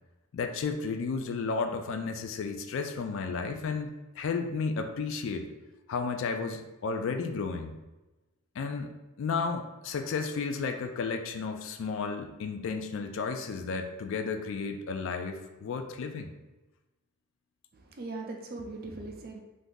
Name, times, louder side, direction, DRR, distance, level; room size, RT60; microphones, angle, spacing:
voice 1, 0.3-5.5 5.9-7.8 8.6-8.9 9.2-16.3, left 4 dB, 60° left, 7 dB, 0.3 m, -33 dB
voice 2, 17.7-19.4, right 3 dB, 45° right, 2 dB, 0.4 m, -40 dB
2.6 x 2.5 x 3.6 m, 1.1 s
head